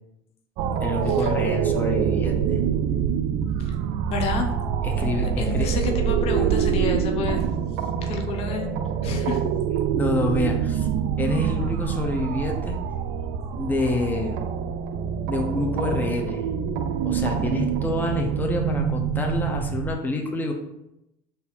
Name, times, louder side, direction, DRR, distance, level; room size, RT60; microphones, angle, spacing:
sound 1, 0.6-19.9, right 8 dB, 60° right, 0.4 m, -25 dB
voice 1, 0.8-2.6 4.8-5.7 9.9-10.9 11.2-12.8 13.6-14.4 15.3-16.4 17.0-20.5, left 2 dB, 15° left, 2 dB, 0.7 m, -27 dB
voice 2, 4.1-4.5 5.0-7.5 8.0-8.7 9.0-9.4, left 5 dB, 50° left, 4 dB, 0.6 m, -30 dB
4.1 x 2.7 x 4.1 m, 0.87 s
supercardioid pair, 100°, 13 cm